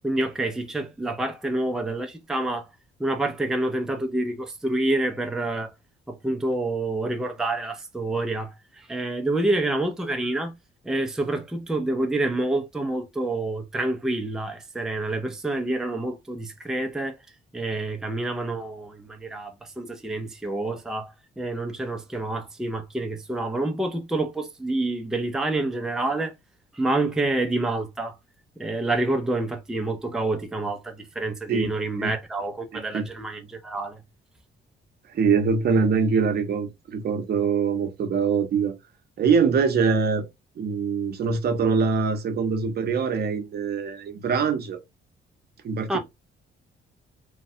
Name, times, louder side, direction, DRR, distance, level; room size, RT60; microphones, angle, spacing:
voice 1, 0.0-2.7 3.0-5.7 6.1-10.5 10.8-17.2 17.5-26.3 26.7-28.1 28.6-34.0 45.9-46.0, right 2 dB, 5° right, 0.5 m, -28 dB
voice 2, 32.7-33.0 35.1-38.8 39.2-40.3 40.6-44.8 45.6-46.0, right 5 dB, 55° right, 0.7 m, -23 dB
3.1 x 2.2 x 2.7 m
cardioid pair, 110°, 19 cm